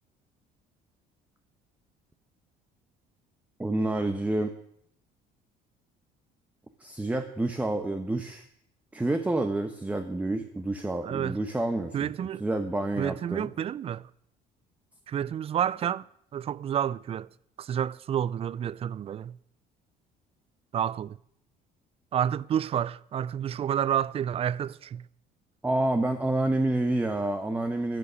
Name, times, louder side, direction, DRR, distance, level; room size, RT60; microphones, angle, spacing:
voice 1, 3.6-4.5 6.8-8.4 8.9-12.1 12.4-13.5 25.6-28.0, right 2 dB, 10° right, 1.0 m, -28 dB
voice 2, 11.0-11.4 11.9-12.4 13.0-14.0 15.1-16.1 16.3-17.3 17.6-19.3 20.7-21.2 22.1-25.0, right 9 dB, 35° right, 0.4 m, -29 dB
13.5 x 9.8 x 6.3 m
cardioid pair, 120°, 17 cm